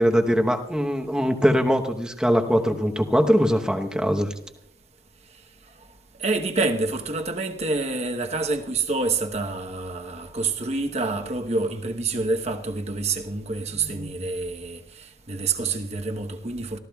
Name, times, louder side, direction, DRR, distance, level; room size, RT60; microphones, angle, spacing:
voice 1, 0.0-4.3, equal, 5° right, 0.9 m, -21 dB
voice 2, 6.2-16.8, right 3 dB, 35° right, 1.0 m, -27 dB
25.5 x 14.5 x 2.3 m
head